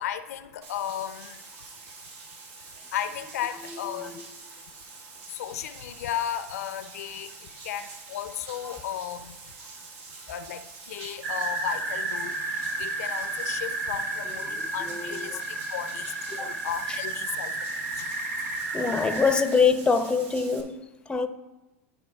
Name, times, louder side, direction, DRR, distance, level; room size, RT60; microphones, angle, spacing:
voice 1, 0.0-1.4 2.9-4.2 5.3-7.3 7.6-9.4 10.3-10.6 10.9-12.4 12.8-15.4 15.7-17.5 18.0-18.1, left 10 dB, 75° left, 0.4 m, -34 dB
Bathtub (filling or washing), 0.6-20.6, right 3 dB, 60° right, 1.4 m, -46 dB
voice 2, 3.7-4.2 8.6-8.8 14.3-14.5 14.8-15.4 16.3-16.6 16.9-17.0 18.7-21.3, left 5 dB, 10° left, 0.5 m, -26 dB
sound 1, 11.2-19.4, right 2 dB, 90° right, 0.9 m, -32 dB
12.5 x 4.8 x 2.3 m
hypercardioid pair, 100°, 8 cm